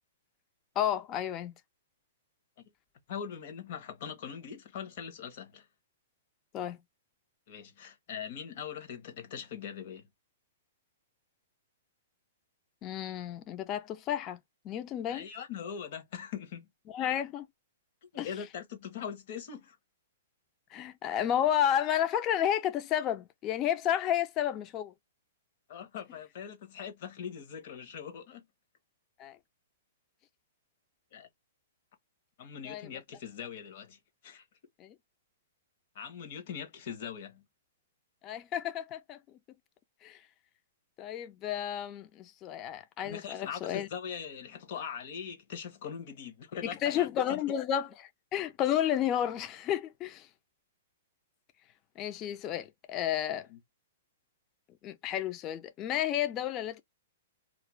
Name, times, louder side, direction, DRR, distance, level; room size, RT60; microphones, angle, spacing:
voice 1, 0.8-1.5 6.5-6.8 12.8-14.4 14.6-15.2 16.9-17.5 18.2-18.3 20.7-24.9 29.2-29.4 32.6-32.9 34.8-34.9 38.2-39.2 40.0-40.2 41.0-43.9 46.6-50.3 52.0-53.5 54.8-56.8, left 10 dB, 25° left, 0.4 m, -31 dB
voice 2, 3.1-5.7 7.5-10.1 15.1-16.7 18.0-19.8 25.7-28.4 31.1-31.3 32.4-34.4 35.9-37.4 43.0-47.4 53.5-53.6, left 7 dB, 50° left, 0.9 m, -41 dB
2.5 x 2.1 x 3.0 m
hypercardioid pair, 150°, 0 cm